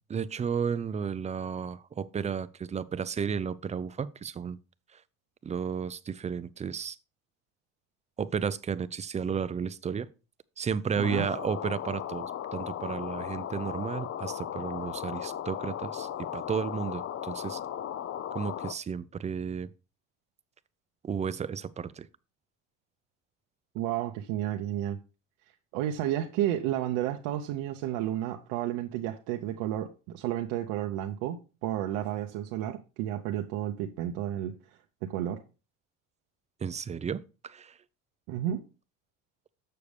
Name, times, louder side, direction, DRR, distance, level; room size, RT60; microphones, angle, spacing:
voice 1, 0.1-4.6 4.9-5.0 5.4-7.0 8.2-10.1 10.6-17.6 18.3-19.7 21.0-22.1 36.6-37.8, right 6 dB, 20° right, 0.4 m, -33 dB
sound 1, 11.0-18.7, left 10 dB, 35° left, 0.5 m, -36 dB
voice 2, 23.7-25.0 25.7-35.4 38.3-38.6, right 12 dB, 75° right, 0.8 m, -32 dB
6.8 x 6.7 x 3.3 m
supercardioid pair, 90°, 40 cm